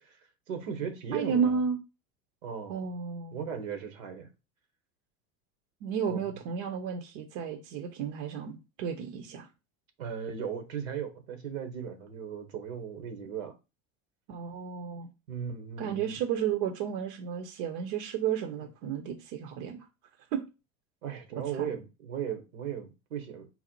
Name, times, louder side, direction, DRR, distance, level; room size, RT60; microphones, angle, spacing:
voice 1, 0.0-1.6 2.4-2.9 3.3-4.3 6.1-6.2 10.0-13.5 15.3-16.2 21.0-23.5, right 7 dB, 85° right, 1.0 m, -37 dB
voice 2, 1.1-1.8 2.7-3.4 5.8-9.5 14.3-15.1 15.8-19.8 20.3-20.4 21.5-21.7, right 7 dB, 65° right, 0.8 m, -32 dB
4.0 x 2.1 x 4.3 m
hypercardioid pair, 80°, 39 cm